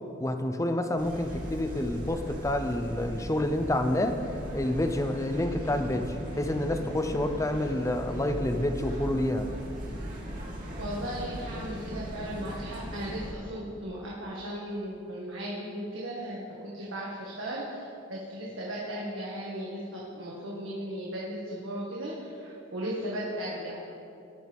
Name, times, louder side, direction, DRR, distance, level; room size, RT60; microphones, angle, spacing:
voice 1, 0.2-4.2 4.5-9.5, left 1 dB, 15° left, 7 dB, 0.7 m, -28 dB
sound 1, 1.0-13.3, equal, 45° right, 2.5 m, -38 dB
voice 2, 10.8-23.7, right 1 dB, 85° right, -5 dB, 1.9 m, -36 dB
16.5 x 10.5 x 3.6 m, 2.6 s
head